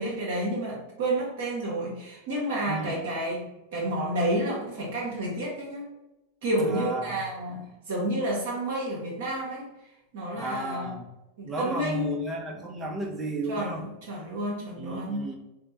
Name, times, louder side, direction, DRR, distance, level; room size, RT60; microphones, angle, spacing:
voice 1, 0.0-3.4 3.7-5.9 6.4-9.7 10.1-10.9 11.4-12.2 13.5-15.3, right 1 dB, 55° right, -3 dB, 0.8 m, -30 dB
voice 2, 2.7-3.0 6.7-7.2 10.3-11.1 11.4-13.8 14.8-15.4, right 2 dB, 20° right, 2 dB, 0.6 m, -34 dB
4.3 x 2.1 x 3.0 m, 0.98 s
figure-of-eight pair, 90°, 0 cm